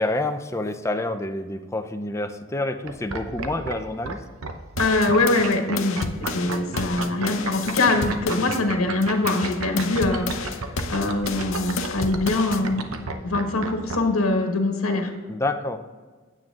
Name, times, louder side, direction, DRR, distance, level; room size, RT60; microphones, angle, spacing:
voice 1, 0.0-4.2 15.3-15.8, left 2 dB, 15° left, 7 dB, 0.5 m, -28 dB
sound 1, 2.8-3.8 4.0-4.1 4.4-14.0, right 4 dB, 90° right, 0.8 m, -31 dB
voice 2, 4.8-10.5 10.9-12.8 13.2-15.1, left 2 dB, 85° left, 3 dB, 1.2 m, -23 dB
sound 2, 4.8-8.6 9.0-12.6, left 4 dB, 65° left, 0.7 m, -32 dB
9.4 x 7.7 x 3.7 m, 1.4 s
head